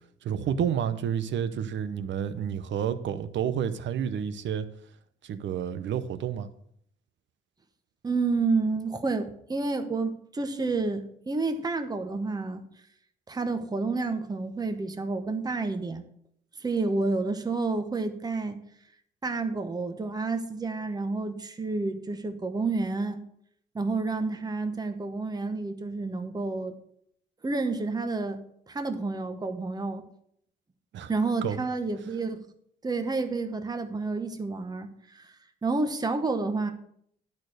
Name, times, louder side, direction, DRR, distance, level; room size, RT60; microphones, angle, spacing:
voice 1, 0.2-4.7 5.2-6.5 30.9-31.1 31.4-31.6, right 8 dB, 70° right, 12 dB, 0.8 m, -30 dB
voice 2, 8.0-12.6 13.3-16.0 16.6-18.6 19.2-23.2 23.7-26.7 27.4-28.4 28.7-30.0 31.1-32.4 32.8-35.3 35.6-36.7, right 3 dB, 20° right, 7 dB, 1.0 m, -29 dB
10.5 x 4.4 x 6.4 m, 0.69 s
cardioid pair, 90°, 20 cm